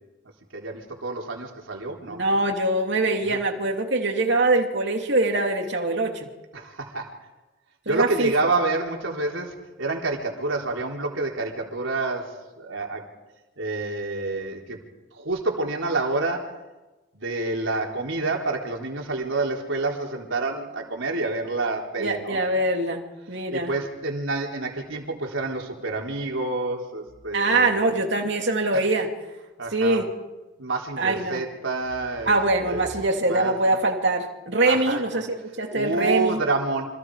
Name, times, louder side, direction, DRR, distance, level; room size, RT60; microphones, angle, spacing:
voice 1, 0.5-2.2 3.3-3.4 6.5-7.1 7.9-13.0 13.6-14.8 15.1-16.5 17.1-22.6 23.5-28.0 28.7-28.8 29.6-30.1 30.6-32.4 32.7-32.9 33.2-33.8 34.6-35.2 35.7-36.8, right 3 dB, 75° right, 0 dB, 4.1 m, -28 dB
voice 2, 2.1-6.3 7.9-8.3 22.0-23.7 27.3-29.1 29.7-30.1 31.0-31.4 32.3-36.4, right 2 dB, 60° right, 3 dB, 3.0 m, -23 dB
28.5 x 26.0 x 5.0 m, 1.1 s
head